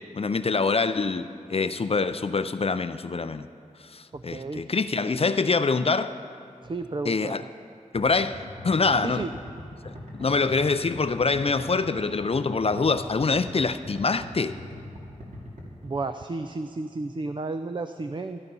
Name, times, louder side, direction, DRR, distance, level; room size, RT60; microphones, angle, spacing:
voice 1, 0.1-3.5 3.8-6.1 7.1-7.4 7.9-9.3 9.8-9.9 10.2-14.6, left 4 dB, 50° left, 11 dB, 0.5 m, -25 dB
voice 2, 4.1-4.6 6.6-7.5 9.0-9.3 15.8-18.4, right 3 dB, 35° right, 8 dB, 0.4 m, -32 dB
sound 1, 8.0-15.9, left 1 dB, 65° right, 2.5 m, -41 dB
14.0 x 12.0 x 5.5 m, 2.4 s
wide cardioid pair, 85°, 13 cm